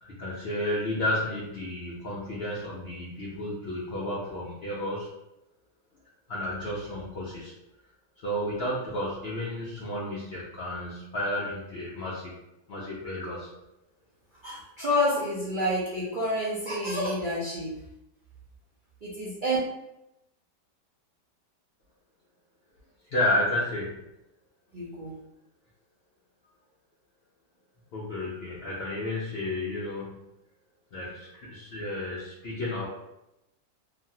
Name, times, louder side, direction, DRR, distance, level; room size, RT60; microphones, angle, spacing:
voice 1, 0.0-5.1 6.3-7.5 8.2-12.3 12.7-13.5 23.1-24.0 27.9-30.2 30.9-32.9, left 1 dB, 75° left, -5 dB, 0.5 m, -32 dB
voice 2, 14.4-17.7 19.0-19.6 24.7-25.1, left 1 dB, 90° right, -7 dB, 0.4 m, -28 dB
2.9 x 2.5 x 2.7 m, 0.88 s
omnidirectional pair, 1.8 m